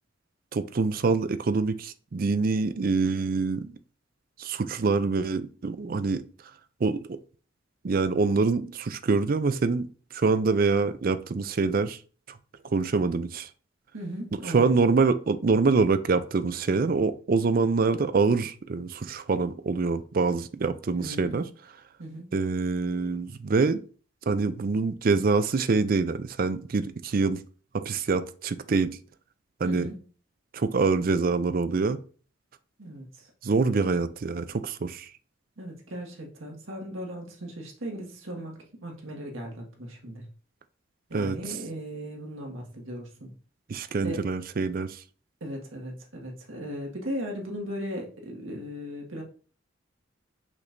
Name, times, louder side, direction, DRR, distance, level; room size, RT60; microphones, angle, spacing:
voice 1, 0.5-3.7 4.4-6.3 6.8-7.2 7.8-9.9 10.1-12.0 12.7-13.5 14.3-21.4 22.3-23.8 24.3-27.4 27.7-29.0 29.6-29.9 30.5-32.0 33.4-35.1 41.1-41.4 43.7-45.0, right 4 dB, 45° right, 0.4 m, -25 dB
voice 2, 13.9-14.9 20.9-21.5 22.0-22.3 29.6-30.0 32.8-33.2 35.6-40.3 41.1-43.3 44.0-44.2 45.4-49.2, equal, 90° right, 1.7 m, -37 dB
6.1 x 5.9 x 2.6 m
head